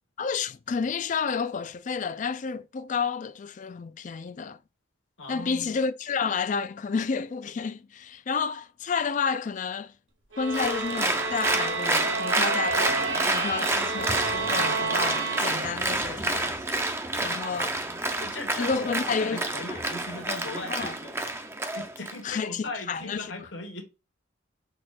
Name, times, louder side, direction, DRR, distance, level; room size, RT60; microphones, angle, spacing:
voice 1, 0.2-4.6 5.3-9.9 10.4-16.6 17.2-17.7 18.6-19.8 20.7-20.9 22.2-23.5, left 5 dB, 40° left, 0.3 m, -31 dB
voice 2, 5.2-5.8 17.5-18.9 19.2-23.8, left 2 dB, 75° left, 1.2 m, -39 dB
sound 1, 10.3-16.0, right 3 dB, 80° right, 1.0 m, -30 dB
Applause, 10.5-22.2, right 2 dB, 15° right, 0.5 m, -29 dB
6.1 x 2.4 x 3.2 m
head